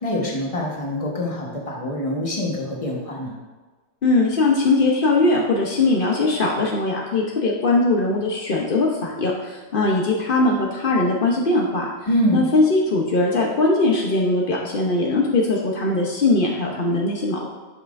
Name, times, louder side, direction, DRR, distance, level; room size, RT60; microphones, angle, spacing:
voice 1, 0.0-3.4 12.1-12.4, equal, 20° left, -2 dB, 1.0 m, -25 dB
voice 2, 4.0-11.9 12.3-17.5, left 2 dB, 75° left, -2 dB, 0.5 m, -20 dB
11.0 x 5.6 x 2.5 m, 1.3 s
omnidirectional pair, 2.1 m